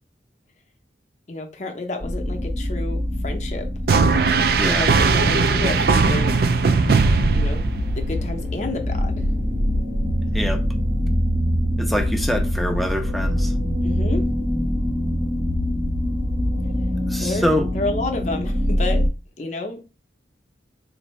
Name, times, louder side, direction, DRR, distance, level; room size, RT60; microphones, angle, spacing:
voice 1, 1.3-3.7 4.7-6.4 6.7-7.0 7.3-7.6 7.9-9.3 13.8-14.2 17.2-19.0 19.4-19.8, left 2 dB, 40° left, 4 dB, 0.7 m, -30 dB
sound 1, 2.0-19.1, equal, 80° right, 1.3 m, -24 dB
sound 2, 3.9-8.2, right 4 dB, 55° right, 0.4 m, -18 dB
voice 2, 11.8-13.5 17.1-17.7, equal, ahead, 4 dB, 0.5 m, -24 dB
4.3 x 2.6 x 3.1 m, 0.31 s
head